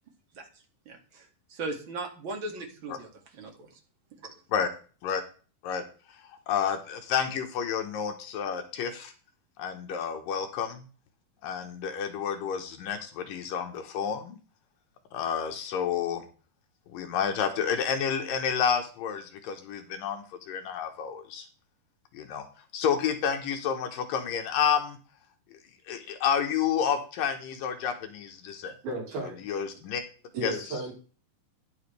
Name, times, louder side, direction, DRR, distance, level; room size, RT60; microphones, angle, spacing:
voice 1, 0.9-3.8 4.2-4.4, right 2 dB, 40° right, 3 dB, 2.4 m, -38 dB
voice 2, 6.3-9.1 9.6-10.8 11.4-14.4 15.1-16.2 16.9-21.5 22.1-22.5 22.7-25.0 25.9-28.8 29.5-30.0 30.4-30.5, left 7 dB, 70° left, 6 dB, 2.6 m, -30 dB
voice 3, 28.8-29.4 30.3-30.9, right 1 dB, 70° right, -2 dB, 5.9 m, -33 dB
11.5 x 10.5 x 3.3 m, 0.38 s
omnidirectional pair, 4.4 m